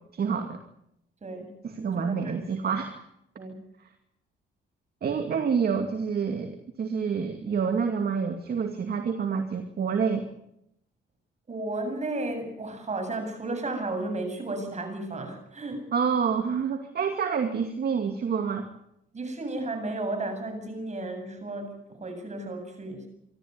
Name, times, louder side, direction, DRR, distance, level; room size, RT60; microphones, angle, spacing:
voice 1, 0.1-0.6 1.6-3.0 3.8-3.9 5.0-10.3 15.9-18.7, right 6 dB, 50° right, 5 dB, 2.5 m, -28 dB
voice 2, 1.2-1.5 2.0-2.7 3.4-3.6 11.5-15.9 19.1-23.1, right 2 dB, 35° right, 6 dB, 7.8 m, -34 dB
25.0 x 13.5 x 9.6 m, 0.79 s
cardioid pair, 90°, 20 cm